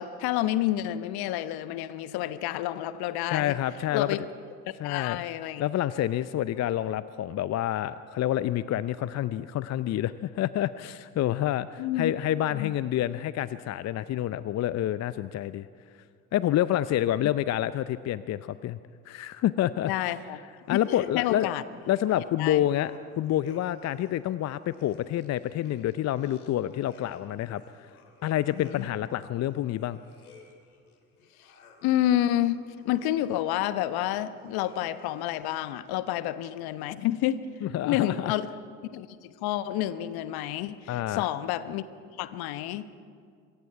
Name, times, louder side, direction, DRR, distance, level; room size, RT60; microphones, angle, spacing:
voice 1, 0.0-3.5 3.9-4.2 4.8-5.7 11.8-12.1 12.5-12.7 19.8-20.4 20.7-21.6 22.4-22.6 28.5-28.9 31.8-32.6 32.8-37.4 37.8-38.5 38.9-41.8 42.2-42.8, left 13 dB, 60° left, 13 dB, 1.2 m, -29 dB
voice 2, 3.3-4.2 4.8-5.2 5.6-15.7 16.3-18.8 19.1-19.9 20.7-21.5 21.9-27.9 28.2-30.0 37.6-38.3 40.9-41.3, left 12 dB, 40° left, 15 dB, 0.6 m, -28 dB
sound 1, 20.6-36.0, left 4 dB, 85° left, 2.5 m, -56 dB
26.5 x 23.0 x 4.7 m, 2.2 s
figure-of-eight pair, 55°, 43 cm